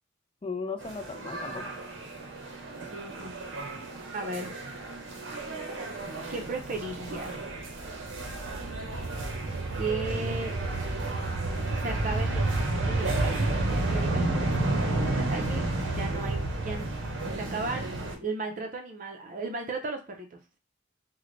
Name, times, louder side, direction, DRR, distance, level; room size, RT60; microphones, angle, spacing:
voice 1, 0.4-1.8 14.1-14.6 15.9-16.3, left 4 dB, 25° left, 0.3 m, -37 dB
sound 1, 0.8-18.2, right 2 dB, 80° right, 0.7 m, -31 dB
voice 2, 2.8-3.3 4.1-4.5 5.7-6.0 6.3-7.6 9.8-10.6 11.7-14.5 15.1-16.9 17.3-20.6, right 3 dB, 40° right, 0.5 m, -36 dB
3.1 x 2.1 x 3.8 m
head